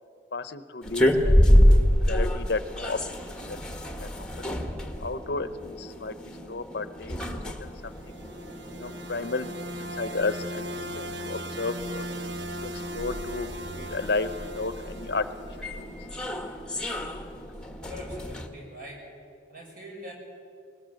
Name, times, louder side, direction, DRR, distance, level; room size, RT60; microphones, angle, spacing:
voice 1, 0.3-1.4 1.7-3.0 3.5-3.6 4.2-4.5 5.0-6.1 6.5-7.2 7.4-7.9 8.7-12.0 12.6-13.5 13.8-15.2 15.8-15.9, left 3 dB, 60° left, 13 dB, 0.8 m, -33 dB
sound 1, 0.8-18.5, equal, 5° left, 1.4 m, -27 dB
sound 2, 7.7-15.9, equal, 90° right, 1.2 m, -38 dB
voice 2, 17.5-19.1 19.5-20.1, equal, 50° right, 0 dB, 6.0 m, -42 dB
21.0 x 19.5 x 7.7 m, 2.5 s
head